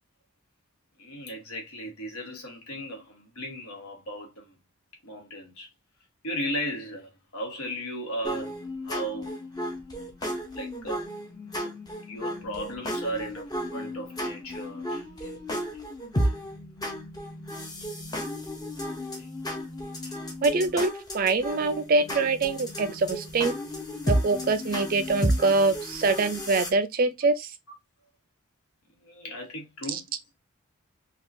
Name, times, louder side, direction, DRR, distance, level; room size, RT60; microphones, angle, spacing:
voice 1, 1.0-4.6 5.0-5.7 6.2-8.5 8.8-9.3 10.5-11.0 12.0-15.3 20.0-20.1 29.0-30.1, equal, 80° left, 1.3 m, -36 dB
sound 1, 8.2-26.7, equal, 15° left, 0.6 m, -33 dB
voice 2, 20.4-23.5 24.1-27.5 29.9-30.0, right 3 dB, 40° right, 0.3 m, -24 dB
3.5 x 2.4 x 2.6 m
head